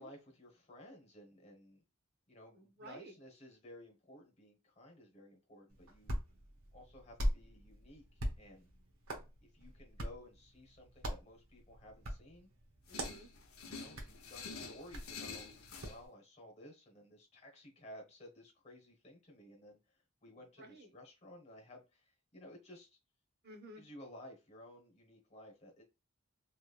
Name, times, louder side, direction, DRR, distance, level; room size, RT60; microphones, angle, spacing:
voice 1, 0.0-1.8 2.3-6.2 6.7-8.0 8.4-8.7 9.4-12.5 13.6-15.5 15.8-22.9 23.7-25.8, left 1 dB, 30° left, 1 dB, 1.2 m, -56 dB
voice 2, 2.5-3.1 12.9-13.3 20.6-20.9 23.4-23.8, right 1 dB, 50° right, 3 dB, 0.7 m, -53 dB
Hands, 5.7-16.1, equal, 75° right, 1.0 m, -43 dB
sound 1, 12.9-16.0, left 5 dB, 85° left, 0.7 m, -48 dB
3.2 x 3.0 x 2.4 m, 0.27 s
head